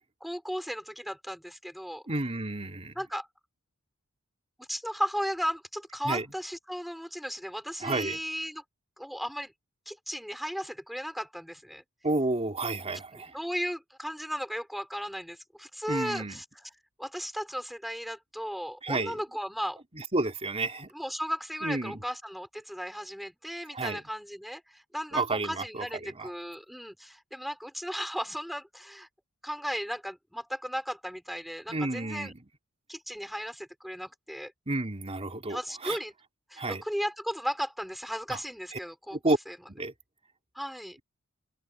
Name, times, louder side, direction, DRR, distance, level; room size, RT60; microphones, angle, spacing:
voice 1, 0.0-2.0 2.9-3.3 4.6-8.6 9.0-9.5 9.8-11.8 13.1-16.4 17.0-19.8 20.9-29.1 29.4-32.3 32.9-34.5 35.5-36.1 36.5-39.2 39.5-39.6 40.5-41.0, equal, ahead, 5.0 m, -35 dB
voice 2, 2.1-3.0 6.1-6.3 7.8-8.2 12.0-13.4 15.9-16.4 18.8-19.2 19.9-20.9 21.6-22.0 23.7-24.0 25.1-26.3 31.7-32.4 34.7-36.0 36.6-36.8 38.3-38.4 38.7-38.8 39.1-39.4 39.7-39.9, right 2 dB, 30° right, 3.4 m, -31 dB
open air
head